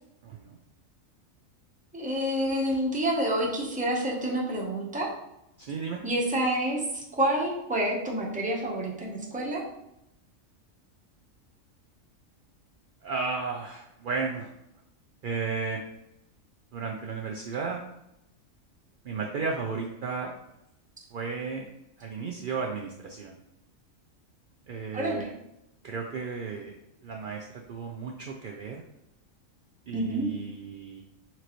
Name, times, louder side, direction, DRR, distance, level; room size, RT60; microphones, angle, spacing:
voice 1, 0.2-0.6 5.6-6.0 13.0-14.5 15.2-15.8 16.7-17.8 19.0-20.3 21.1-21.7 22.0-23.3 24.7-25.3 25.8-26.8 27.0-28.8 29.9-31.0, right 5 dB, 70° right, 0 dB, 0.5 m, -34 dB
voice 2, 1.9-5.1 6.0-9.6 24.9-25.3 29.9-30.3, right 1 dB, 5° right, -3 dB, 0.7 m, -28 dB
4.5 x 3.8 x 3.0 m, 0.85 s
omnidirectional pair, 1.4 m